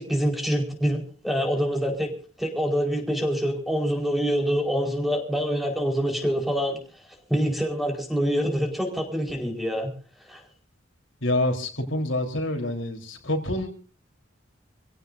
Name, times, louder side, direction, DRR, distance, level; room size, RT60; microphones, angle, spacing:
voice 1, 0.0-2.1 2.4-6.8 7.3-9.9 10.3-10.4, equal, ahead, 2 dB, 4.7 m, -25 dB
voice 2, 11.2-13.7, left 1 dB, 75° left, 3 dB, 4.1 m, -27 dB
28.0 x 17.0 x 2.7 m, 0.38 s
head